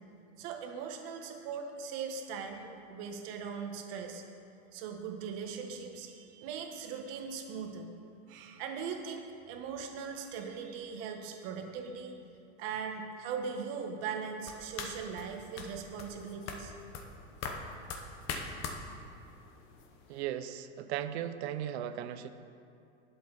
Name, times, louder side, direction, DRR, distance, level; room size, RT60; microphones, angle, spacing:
voice 1, 0.4-4.2 4.7-7.9 8.3-12.1 12.6-16.7, right 6 dB, 40° right, 3 dB, 1.4 m, -40 dB
sound 1, 14.4-20.2, left 4 dB, 30° left, 1.0 m, -43 dB
voice 2, 20.1-22.3, right 11 dB, 55° right, 11 dB, 0.8 m, -37 dB
20.0 x 7.8 x 4.1 m, 2.5 s
supercardioid pair, 165°, 40 cm